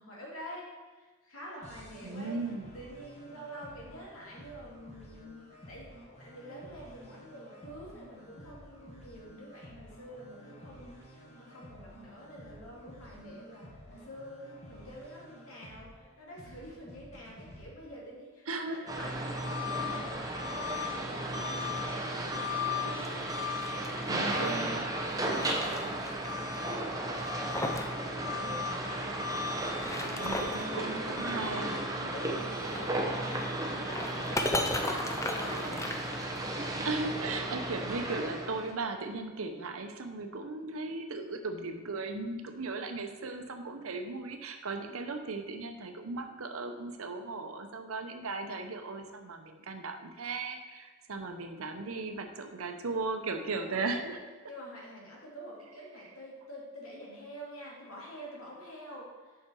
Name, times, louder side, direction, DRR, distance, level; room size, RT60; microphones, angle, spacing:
voice 1, 0.0-2.4 2.7-23.3 23.7-24.7 28.1-28.6 30.0-35.9 36.8-37.2 53.6-59.4, equal, 85° left, -4 dB, 2.5 m, -47 dB
sound 1, 1.6-17.6, equal, 30° left, 1.6 m, -52 dB
voice 2, 2.0-2.7 18.5-18.8 24.1-24.8 30.2-31.9 36.8-54.2, right 3 dB, 85° right, 6 dB, 0.8 m, -37 dB
sound 2, 18.9-38.7, equal, 15° right, 0.8 m, -34 dB
sound 3, 22.8-24.6 25.0-26.3 26.5-26.6 27.1-28.0 28.2-28.3 29.6-30.7 32.6-36.7, left 1 dB, 15° left, 0.5 m, -36 dB
7.6 x 5.9 x 4.5 m, 1.3 s
head